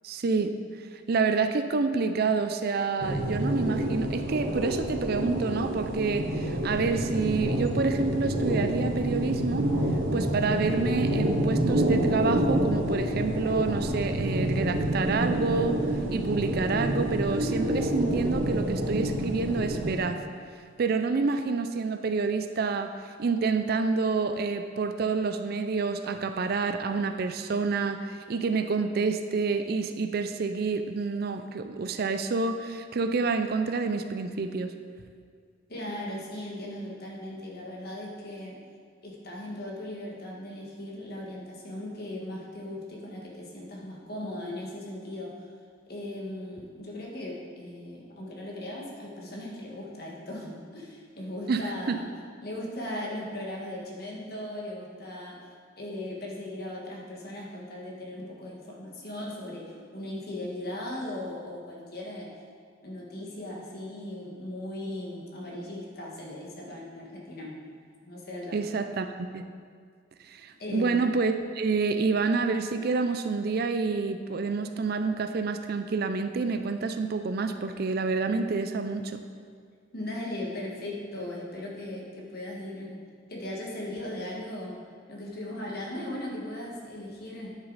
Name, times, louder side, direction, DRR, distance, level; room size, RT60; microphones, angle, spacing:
voice 1, 0.0-0.5 0.9-9.7 10.1-15.8 16.1-20.2 20.8-34.7 51.5-52.0 68.5-69.4 70.2-79.2, right 4 dB, 50° right, 9 dB, 0.4 m, -28 dB
sound 1, 3.0-20.0, right 1 dB, 75° right, 1.1 m, -28 dB
voice 2, 35.7-38.6 39.0-45.5 45.9-52.1 52.4-55.4 55.8-62.3 62.8-67.6 68.0-68.6 70.6-71.1 79.9-83.0 83.3-84.8 85.1-87.5, left 1 dB, 50° left, -2 dB, 1.6 m, -38 dB
9.8 x 6.4 x 4.0 m, 2.1 s
head